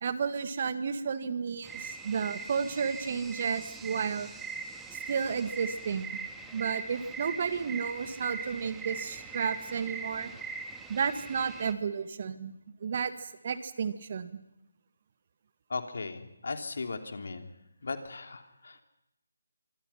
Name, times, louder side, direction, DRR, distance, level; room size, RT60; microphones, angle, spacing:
voice 1, 0.0-4.3 4.9-6.2 6.5-10.3 10.9-12.5 12.8-14.4, right 6 dB, 40° right, 12 dB, 1.8 m, -32 dB
sound 1, 1.6-11.7, right 4 dB, 5° right, 1.9 m, -41 dB
voice 2, 15.7-17.4 17.8-18.8, left 4 dB, 60° left, 7 dB, 3.1 m, -37 dB
25.5 x 24.5 x 5.8 m, 0.89 s
figure-of-eight pair, 155°, 0 cm